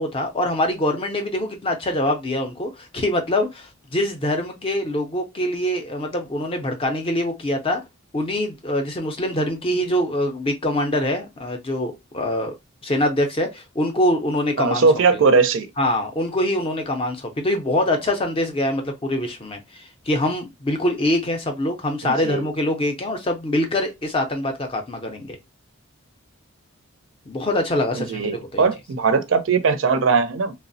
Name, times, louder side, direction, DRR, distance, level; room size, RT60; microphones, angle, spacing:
voice 1, 0.0-7.8 8.1-12.5 12.8-14.9 15.8-25.4 27.3-28.7, left 1 dB, 25° left, 0.4 m, -24 dB
voice 2, 14.6-15.7 22.0-22.4 27.9-30.5, right 4 dB, 55° right, 0.4 m, -19 dB
3.1 x 2.0 x 2.5 m
head